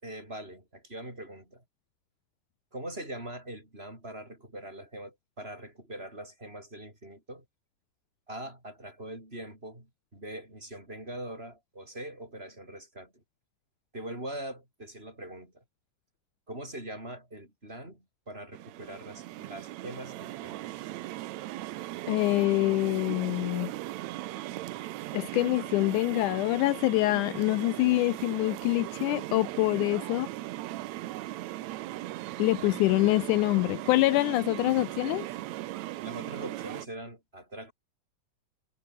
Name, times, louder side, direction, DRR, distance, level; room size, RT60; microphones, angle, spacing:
voice 1, 0.0-1.6 2.7-7.5 8.3-13.2 13.9-15.6 16.5-20.7 32.6-32.8 36.0-37.7, right 1 dB, 15° right, 7.6 m, -42 dB
sound 1, 18.5-36.9, right 16 dB, 80° right, 1.6 m, -38 dB
voice 2, 22.1-23.7 25.1-30.3 32.4-35.3, left 20 dB, 85° left, 1.7 m, -25 dB
omnidirectional pair, 4.1 m